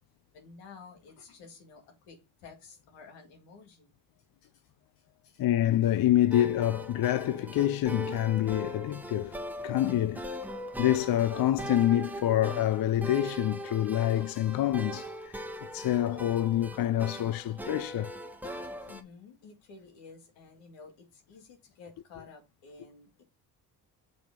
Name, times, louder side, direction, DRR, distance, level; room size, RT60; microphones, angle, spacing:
voice 1, 0.3-3.9 4.4-4.6 5.0-5.4 18.9-23.2, left 5 dB, 85° left, 2.0 m, -52 dB
voice 2, 5.4-9.4 9.6-10.2 10.8-18.1, left 13 dB, 55° left, 0.5 m, -27 dB
sound 1, 6.3-19.0, equal, 5° right, 1.1 m, -40 dB
6.2 x 4.4 x 5.2 m
supercardioid pair, 60°, 43 cm